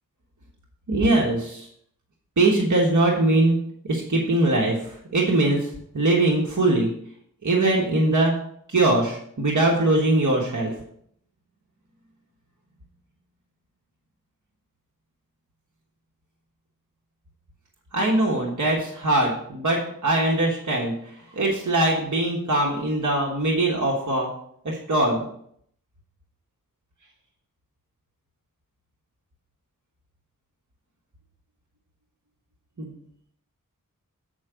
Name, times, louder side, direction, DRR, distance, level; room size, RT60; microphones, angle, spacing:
voice 1, 0.9-1.7 2.4-3.6 3.8-5.7 5.9-6.9 7.4-8.3 8.7-10.7 17.9-20.9 21.3-24.3 24.6-25.2 32.8-32.9, right 2 dB, 60° right, -2 dB, 1.5 m, -21 dB
8.5 x 4.6 x 5.0 m, 0.67 s
cardioid pair, 40°, 34 cm